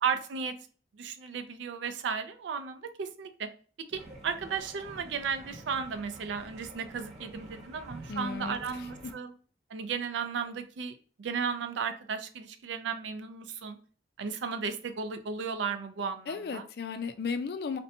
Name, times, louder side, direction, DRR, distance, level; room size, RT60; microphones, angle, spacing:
voice 1, 0.0-0.5 0.9-3.5 3.9-9.3 9.7-13.8 14.2-16.6, right 6 dB, 85° right, 9 dB, 0.4 m, -34 dB
sound 1, 3.9-9.1, right 1 dB, 35° right, 0.6 m, -48 dB
voice 2, 8.1-8.6 16.3-17.8, left 5 dB, 60° left, 8 dB, 0.3 m, -34 dB
2.6 x 2.1 x 2.7 m, 0.41 s
head